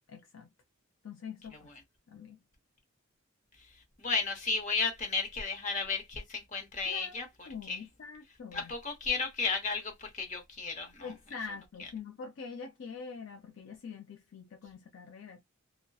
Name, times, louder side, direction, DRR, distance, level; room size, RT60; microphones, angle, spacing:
voice 1, 0.1-0.5 1.0-1.7 2.1-2.4 6.9-7.2 7.5-8.7 11.0-15.4, left 5 dB, 60° left, 0.4 m, -44 dB
voice 2, 4.0-7.8 8.5-11.1 11.8-11.9, left 4 dB, 35° left, 0.8 m, -34 dB
2.6 x 2.1 x 2.2 m
head